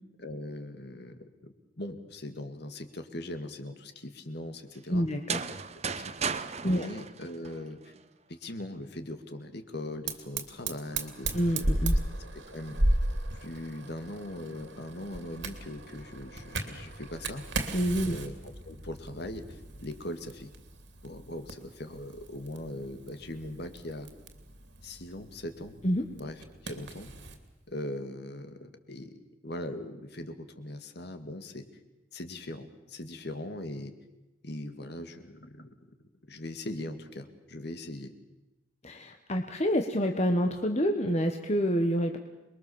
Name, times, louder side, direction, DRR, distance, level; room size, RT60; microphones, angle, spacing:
voice 1, 0.2-5.1 6.0-6.2 6.6-7.9 8.3-11.3 12.2-12.8 13.4-17.5 18.1-20.5 21.0-24.1 24.8-25.8 26.2-27.1 27.7-31.7 32.1-33.9 34.4-35.8 36.3-38.1, left 1 dB, 50° left, 8 dB, 2.2 m, -40 dB
voice 2, 4.9-5.4 6.6-6.9 11.3-12.0 17.7-18.2 25.8-26.0 38.8-42.2, equal, 30° left, 4 dB, 1.4 m, -27 dB
sound 1, 5.1-8.0, right 6 dB, 30° right, 0.9 m, -35 dB
Fire, 10.1-27.4, right 1 dB, 60° right, 2.8 m, -35 dB
27.5 x 22.0 x 7.2 m, 1.0 s
head